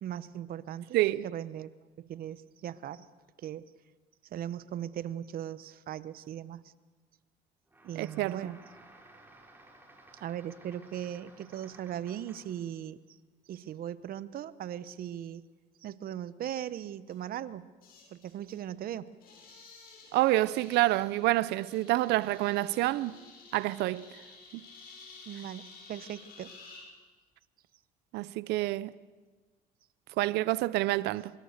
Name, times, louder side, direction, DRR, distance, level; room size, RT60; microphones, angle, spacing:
voice 1, 0.0-1.7 2.0-3.1 3.4-3.7 4.3-6.6 7.8-8.6 10.2-13.0 13.5-15.4 15.8-17.7 18.1-19.1 25.3-26.5, right 10 dB, 60° right, 1.0 m, -39 dB
voice 2, 0.9-1.3 7.9-8.5 20.1-23.2 23.5-24.1 24.5-24.6 28.1-28.9 30.2-31.3, right 17 dB, 85° right, 0.6 m, -28 dB
sound 1, 7.7-12.7, right 2 dB, 10° right, 4.4 m, -56 dB
sound 2, 17.1-17.2 17.8-18.6 19.1-26.8, left 4 dB, 65° left, 7.7 m, -53 dB
25.0 x 22.5 x 6.6 m
cardioid pair, 110°, 17 cm